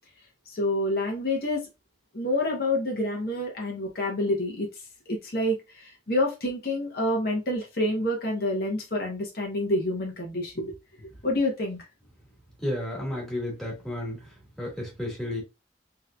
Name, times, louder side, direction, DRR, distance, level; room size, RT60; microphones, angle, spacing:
voice 1, 0.5-1.7 2.1-4.7 5.1-10.7 11.0-11.8, left 1 dB, 60° left, 1 dB, 1.0 m, -28 dB
voice 2, 12.6-14.2 14.6-15.4, left 1 dB, ahead, -4 dB, 1.6 m, -32 dB
3.6 x 2.9 x 2.3 m, 0.25 s
head